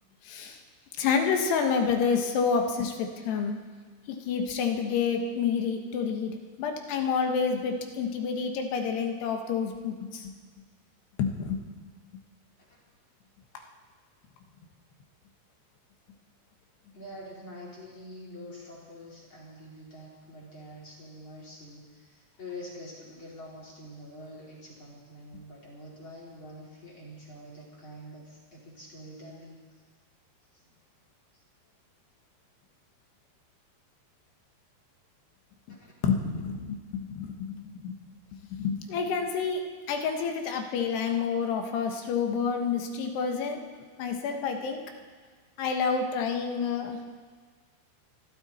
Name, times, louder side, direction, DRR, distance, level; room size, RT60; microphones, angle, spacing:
voice 1, 0.2-0.6 1.0-3.6 4.1-10.3 11.2-11.6 36.0-37.9 38.5-43.6 44.0-44.8 45.6-47.0, left 6 dB, 75° left, 4 dB, 3.4 m, -29 dB
voice 2, 16.9-29.6 30.5-30.7 35.8-35.9, left 1 dB, 30° left, -5 dB, 4.4 m, -46 dB
26.0 x 12.5 x 4.3 m, 1.5 s
omnidirectional pair, 4.9 m